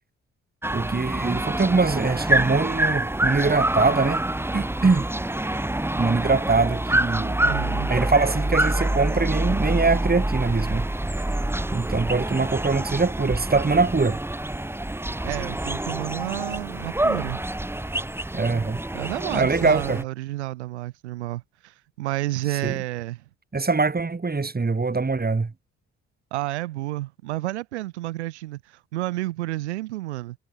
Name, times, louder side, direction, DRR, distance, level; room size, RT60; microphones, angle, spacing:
sound 1, 0.6-20.0, right 1 dB, 5° right, 1.4 m, -26 dB
voice 1, 0.7-4.2 4.5-5.1 5.9-7.4 7.9-10.9 11.7-14.2 18.3-18.8 19.3-20.0 22.6-22.8 23.5-25.5, right 4 dB, 30° right, 5.2 m, -23 dB
voice 2, 7.4-7.9 15.2-17.4 18.9-23.2 26.3-30.4, right 17 dB, 85° right, 5.0 m, -30 dB
hypercardioid pair, 45°, 33 cm